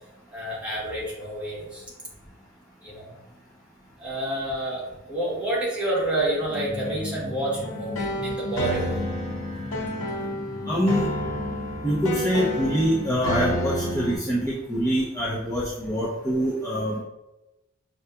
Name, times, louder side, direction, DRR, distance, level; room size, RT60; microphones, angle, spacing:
voice 1, 0.3-1.8 2.8-3.2 4.0-9.0, right 1 dB, 5° right, -7 dB, 1.2 m, -29 dB
sound 1, 6.5-14.5, left 2 dB, 55° left, 1.0 m, -37 dB
sound 2, 7.6-14.1, equal, 85° left, 1.4 m, -30 dB
voice 2, 10.7-11.1 11.8-17.0, equal, 15° left, -8 dB, 0.8 m, -25 dB
6.3 x 2.8 x 2.3 m, 0.99 s
head